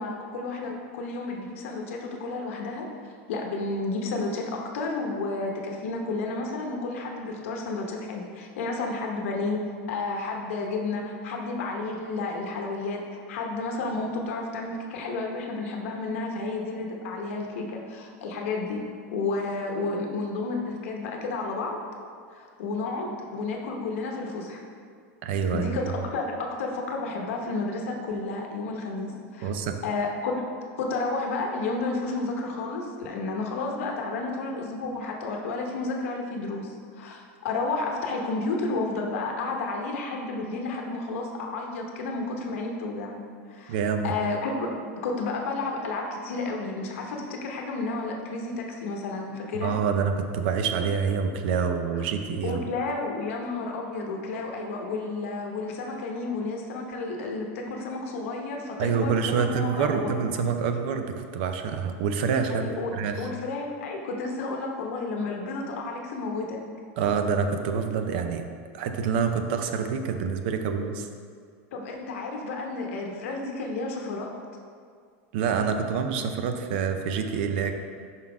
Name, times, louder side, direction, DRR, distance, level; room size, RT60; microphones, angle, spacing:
voice 1, 0.0-2.9 3.3-9.6 9.9-13.0 13.3-18.8 19.1-21.8 22.3-24.6 25.5-29.5 29.8-30.4 30.8-43.2 43.5-43.7 44.0-49.8 51.9-52.0 52.4-60.2 62.5-66.6 71.7-74.3, left 3 dB, 75° left, 1 dB, 0.8 m, -31 dB
voice 2, 25.2-25.7 29.4-29.8 43.7-44.1 49.6-52.7 58.8-63.3 67.0-68.4 68.7-71.1 75.3-77.7, right 6 dB, 50° right, 6 dB, 0.5 m, -27 dB
5.6 x 4.0 x 4.8 m, 2.1 s
supercardioid pair, 180°, 7 cm